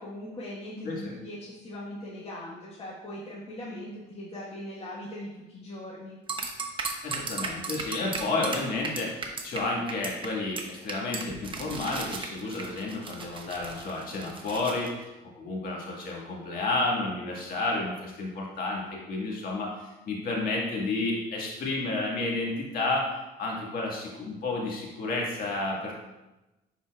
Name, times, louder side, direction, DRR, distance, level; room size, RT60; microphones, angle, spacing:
voice 1, 0.0-6.2 8.1-8.6, left 1 dB, 35° left, -8 dB, 1.4 m, -40 dB
sound 1, 6.3-9.6 9.9-10.3 10.6-10.7 10.9-14.9, right 4 dB, 30° right, 0.9 m, -35 dB
voice 2, 7.0-23.1 23.4-25.9, left 2 dB, 60° left, -3 dB, 1.8 m, -31 dB
10.0 x 4.2 x 2.4 m, 1.0 s
cardioid pair, 110°, 17 cm